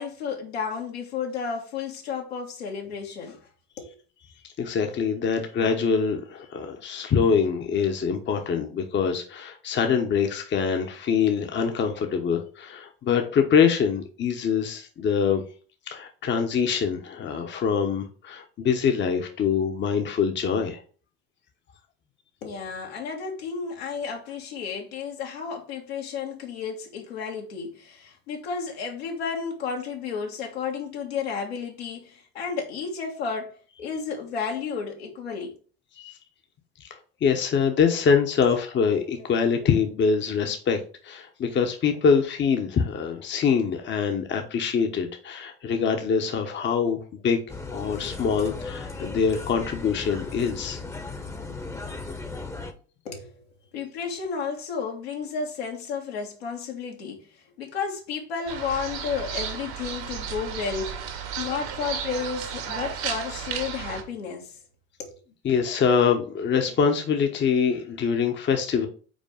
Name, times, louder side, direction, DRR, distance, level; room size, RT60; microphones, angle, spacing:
voice 1, 0.0-3.4 3.8-4.0 22.4-35.6 53.1-53.4 53.7-57.3 57.6-64.6 65.0-65.2, left 5 dB, 75° left, 1.8 m, -32 dB
voice 2, 4.6-15.4 15.9-20.8 36.0-36.2 36.8-36.9 37.2-47.4 47.7-50.8 65.4-68.9, left 6 dB, 35° left, 1.1 m, -24 dB
sound 1, 47.5-52.7, left 3 dB, 10° left, 1.0 m, -36 dB
sound 2, 58.5-64.0, right 7 dB, 65° right, 1.7 m, -33 dB
5.3 x 4.5 x 5.1 m
hypercardioid pair, 70°, 31 cm